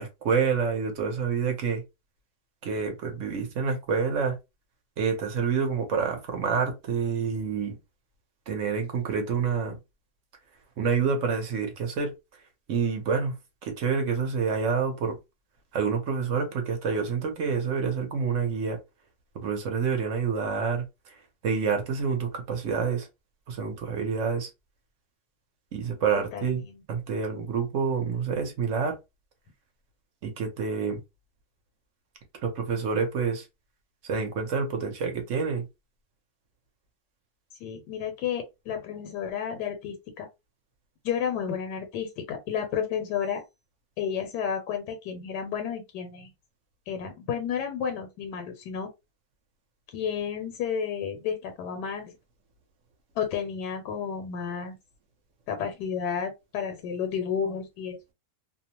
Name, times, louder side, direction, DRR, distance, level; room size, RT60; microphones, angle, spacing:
voice 1, 0.0-1.8 2.6-4.4 5.0-7.8 8.5-9.8 10.8-12.1 12.7-13.4 13.6-15.2 15.7-18.8 19.3-21.2 21.4-23.1 23.5-24.5 25.7-26.6 26.9-29.0 30.2-31.0 32.4-33.5 34.0-35.7, right 5 dB, 60° right, 0.9 m, -28 dB
voice 2, 26.3-26.8 37.6-40.3 41.0-43.4 44.0-46.3 46.9-48.9 49.9-52.1 53.2-54.8 55.5-58.0, left 7 dB, 85° left, 1.2 m, -31 dB
2.8 x 2.0 x 2.8 m
omnidirectional pair, 1.8 m